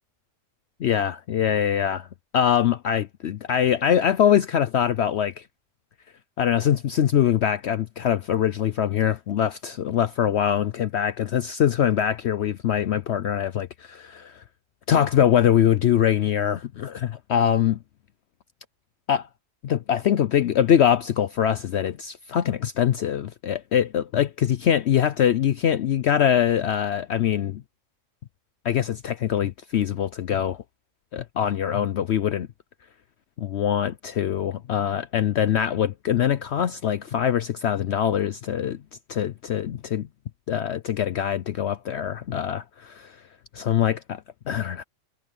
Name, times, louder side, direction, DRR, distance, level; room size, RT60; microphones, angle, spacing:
voice 1, 0.8-2.1 2.3-5.3 6.4-14.4 14.9-17.8 19.1-19.3 19.6-27.6 28.6-30.6 31.1-32.5 33.4-38.8 39.1-40.1 40.5-43.1 43.5-44.0 44.5-44.8, left 9 dB, 65° left, 0.8 m, -23 dB
omnidirectional pair, 1.4 m